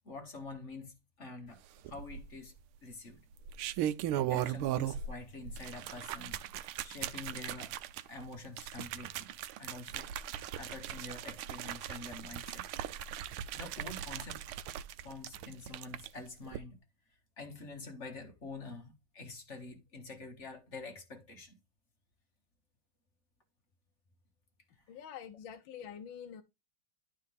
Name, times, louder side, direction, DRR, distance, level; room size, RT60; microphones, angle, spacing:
voice 1, 0.0-1.6 1.8-2.5 2.8-3.2 4.2-6.4 6.8-7.8 8.0-9.3 9.6-12.6 13.5-14.4 15.0-16.8 17.4-21.6 24.9-25.0, left 3 dB, 35° left, 1.7 m, -47 dB
sound 1, 1.9-2.5 3.3-5.2 5.5-16.1 16.5-16.6, right 11 dB, 85° right, 1.5 m, -38 dB
voice 2, 24.9-26.4, left 8 dB, 70° left, 1.5 m, -46 dB
11.5 x 4.3 x 3.5 m
omnidirectional pair, 2.3 m